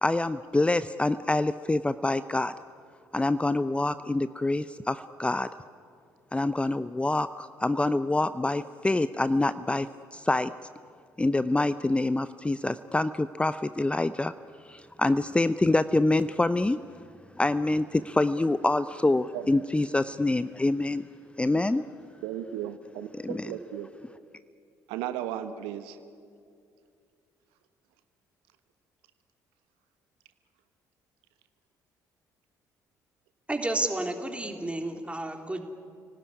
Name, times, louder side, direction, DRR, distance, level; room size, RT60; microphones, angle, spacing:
voice 1, 0.0-2.5 3.1-5.5 6.3-10.5 11.2-14.3 14.6-16.8 17.4-21.1 21.4-21.8 23.2-23.4, left 2 dB, 10° left, 14 dB, 0.6 m, -26 dB
voice 2, 19.3-19.6 21.5-21.8 22.2-23.9 24.9-26.0, right 11 dB, 70° right, 10 dB, 1.2 m, -36 dB
voice 3, 33.5-35.6, right 2 dB, 15° right, 4 dB, 3.4 m, -31 dB
30.0 x 18.0 x 9.8 m, 2.4 s
figure-of-eight pair, 50°, 9 cm